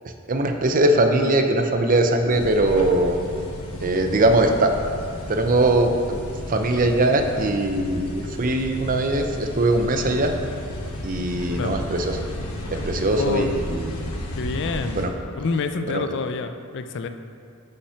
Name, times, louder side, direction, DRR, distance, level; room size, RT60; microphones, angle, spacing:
voice 1, 0.3-3.2 3.8-4.7 5.3-6.2 6.5-10.3 11.0-12.3 12.7-13.9 14.9-15.1 15.9-16.0, right 2 dB, 40° right, 5 dB, 0.6 m, -21 dB
sound 1, 2.3-15.1, left 1 dB, 75° left, 1.0 m, -33 dB
voice 2, 11.5-11.8 13.1-13.5 14.3-15.0 15.4-17.1, left 4 dB, 55° left, 9 dB, 0.4 m, -27 dB
6.6 x 5.6 x 5.7 m, 2.5 s
head